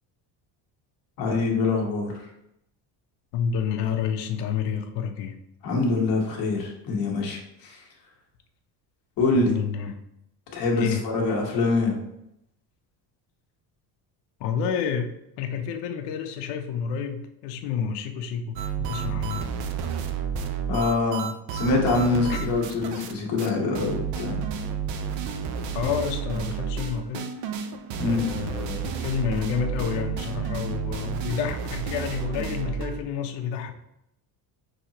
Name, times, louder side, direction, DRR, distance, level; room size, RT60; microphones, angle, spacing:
voice 1, 1.2-2.1 5.6-7.8 9.2-9.5 10.5-12.0 20.7-24.4 28.0-28.2, left 3 dB, 50° left, -1 dB, 1.4 m, -24 dB
voice 2, 3.3-5.4 9.3-10.0 10.7-11.1 14.4-19.5 22.3-22.6 25.7-27.3 28.0-33.7, left 7 dB, 75° left, 6 dB, 0.7 m, -29 dB
sound 1, 18.6-23.1 23.4-23.5 23.8-33.0, right 6 dB, 60° right, 0.5 m, -31 dB
6.1 x 2.9 x 2.8 m, 0.80 s
cardioid pair, 180°, 43 cm